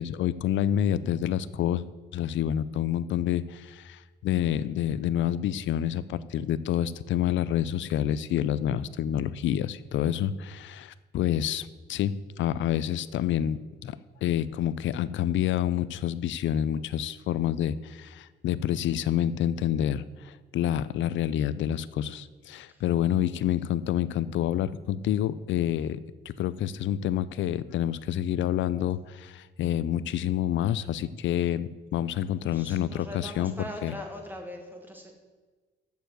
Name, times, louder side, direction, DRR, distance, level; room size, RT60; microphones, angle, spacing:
voice 1, 0.0-1.8 2.1-26.0 26.3-34.0, left 11 dB, 70° left, 17 dB, 0.5 m, -28 dB
voice 2, 32.4-35.1, left 1 dB, 10° right, 1 dB, 1.5 m, -41 dB
7.0 x 6.9 x 7.7 m, 1.4 s
cardioid pair, 90°, 20 cm